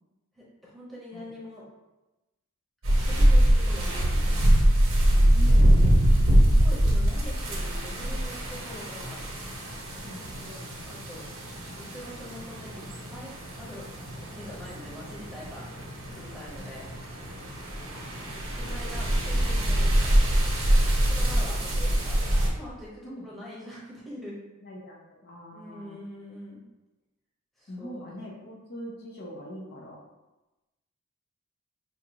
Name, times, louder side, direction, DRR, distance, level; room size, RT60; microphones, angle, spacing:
voice 1, 0.3-1.6 2.9-4.5 5.0-5.7 6.4-9.3 10.4-11.3 11.6-15.7 16.1-16.9 18.5-20.2 21.0-22.2 22.5-24.4 25.5-26.6 27.6-28.0, left 1 dB, ahead, -7 dB, 0.9 m, -44 dB
sound 1, 2.8-22.5, right 1 dB, 65° right, 0.9 m, -24 dB
voice 2, 5.3-5.7 10.0-10.8 16.8-16.9 17.9-18.3 23.0-23.2 24.6-26.0 27.7-30.0, equal, 50° left, -3 dB, 0.8 m, -43 dB
4.9 x 2.5 x 2.9 m, 1.0 s
head